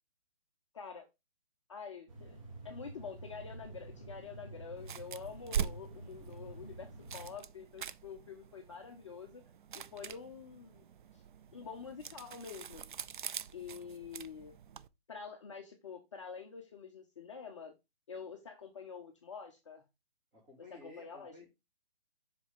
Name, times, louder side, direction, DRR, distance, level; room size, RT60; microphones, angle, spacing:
voice 1, 0.7-1.1 1.7-2.4 2.6-9.4 9.7-10.8 11.1-11.2 11.5-12.8 13.5-14.5 15.1-17.7 18.1-19.8 20.7-21.5, left 6 dB, 30° left, 0.6 m, -47 dB
sound 1, 2.1-7.3, right 2 dB, 35° right, 1.4 m, -49 dB
sound 2, 4.8-14.9, right 8 dB, 55° right, 0.4 m, -44 dB
voice 2, 20.3-21.5, left 3 dB, 15° right, 2.2 m, -54 dB
5.7 x 4.9 x 3.5 m
hypercardioid pair, 165°, 31 cm